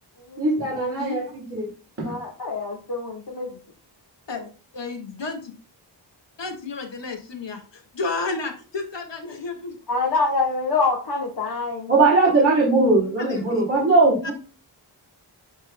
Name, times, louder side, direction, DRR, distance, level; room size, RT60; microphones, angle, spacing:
voice 1, 0.4-1.2 1.5-1.7 2.0-2.1 11.9-14.3, right 3 dB, 30° right, -5 dB, 3.5 m, -19 dB
voice 2, 2.0-3.5 4.3-4.4 9.9-11.9, left 3 dB, 60° left, -2 dB, 1.7 m, -26 dB
voice 3, 4.7-5.5 6.4-9.8 13.2-13.6 14.2-14.3, left 3 dB, 75° left, 3 dB, 2.0 m, -31 dB
10.5 x 4.4 x 2.3 m, 0.36 s
wide cardioid pair, 105°, 44 cm